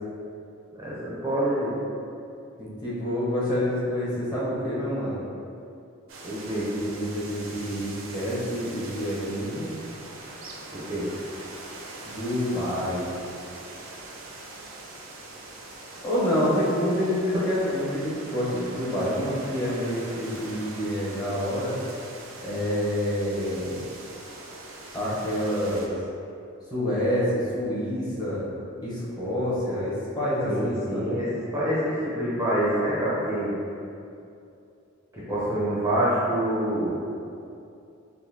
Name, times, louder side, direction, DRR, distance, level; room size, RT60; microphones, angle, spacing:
voice 1, 0.8-1.8 6.2-6.7 10.7-11.1 30.5-33.5 35.1-37.1, right 1 dB, 15° right, -9 dB, 0.5 m, -26 dB
voice 2, 2.6-5.2 6.8-9.7 12.0-13.1 16.0-21.8 22.4-23.8 24.9-25.9 26.7-28.4 28.8-31.2 35.3-35.4, equal, 20° left, -8 dB, 0.8 m, -27 dB
sound 1, 6.1-25.9, right 2 dB, 70° right, 0.5 m, -42 dB
3.7 x 2.6 x 2.6 m, 2.6 s
head